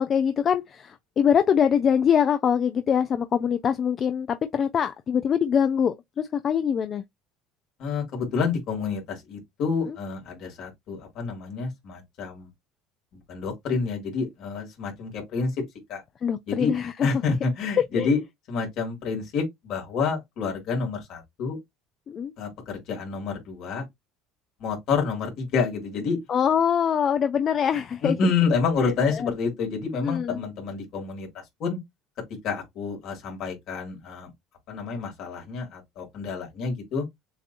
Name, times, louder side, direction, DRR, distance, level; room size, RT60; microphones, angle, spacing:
voice 1, 0.0-7.0 9.9-10.0 16.2-17.1 18.0-18.2 22.1-22.3 26.3-28.2 28.5-28.6 29.1-29.3 29.9-30.4, left 8 dB, 30° left, 0.4 m, -24 dB
voice 2, 7.8-12.5 13.3-15.5 15.9-16.0 16.5-16.7 17.0-18.2 18.5-21.6 22.4-23.8 24.6-26.2 28.0-31.8 32.4-34.3 34.7-37.1, left 5 dB, 50° left, 2.6 m, -28 dB
7.0 x 2.8 x 2.5 m
cardioid pair, 150°, 0 cm